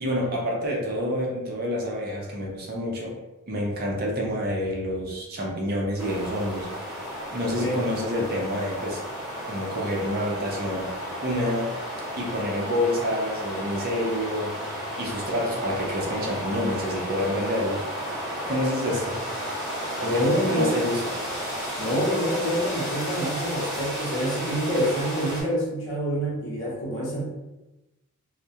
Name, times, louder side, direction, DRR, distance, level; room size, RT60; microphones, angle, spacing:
voice 1, 0.0-3.1 3.5-6.7 7.3-9.0 9.5-10.9 11.2-11.7 12.2-14.5 15.0-17.8 18.5-19.2 20.0-21.0, equal, 45° right, -2 dB, 0.5 m, -28 dB
sound 1, 6.0-25.4, equal, ahead, 0.9 m, -33 dB
voice 2, 7.4-7.8 20.0-20.8 21.8-27.2, equal, 55° left, -4 dB, 0.8 m, -26 dB
2.2 x 2.1 x 2.7 m, 1.0 s
head